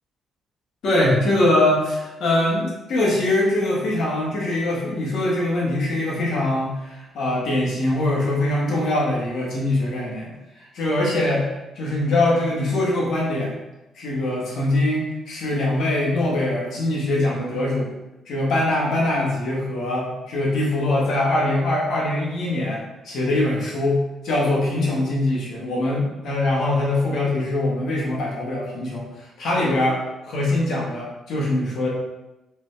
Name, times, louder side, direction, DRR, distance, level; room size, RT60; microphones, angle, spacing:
voice 1, 0.8-10.3 10.7-13.5 13.9-17.9 18.3-31.9, left 1 dB, 70° left, -3 dB, 1.4 m, -22 dB
3.9 x 3.5 x 3.3 m, 1.0 s
cardioid pair, 90°, 0 cm